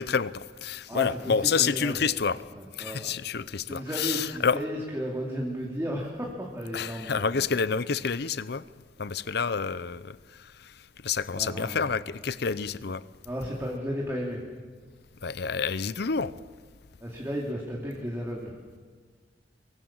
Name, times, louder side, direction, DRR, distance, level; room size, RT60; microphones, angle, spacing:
voice 1, 0.0-2.4 2.8-4.6 6.7-8.6 9.0-10.7 11.0-13.0 15.2-16.4, left 5 dB, 65° left, 0.7 m, -28 dB
voice 2, 0.9-2.0 2.5-3.1 3.7-7.4 11.4-11.8 13.2-14.4 17.0-18.5, equal, 15° right, 2.8 m, -34 dB
24.0 x 23.5 x 7.3 m
head